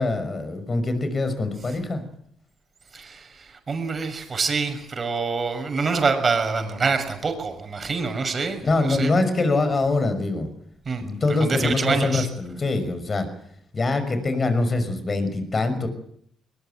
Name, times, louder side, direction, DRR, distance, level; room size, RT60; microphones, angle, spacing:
voice 1, 0.0-2.0 8.6-10.5 11.0-13.3 13.7-15.9, left 3 dB, 35° left, 10 dB, 5.9 m, -24 dB
voice 2, 2.9-9.1 10.8-11.0 11.4-12.3, right 4 dB, 40° right, 7 dB, 6.3 m, -26 dB
21.5 x 21.0 x 9.2 m, 0.70 s
cardioid pair, 90°, 0 cm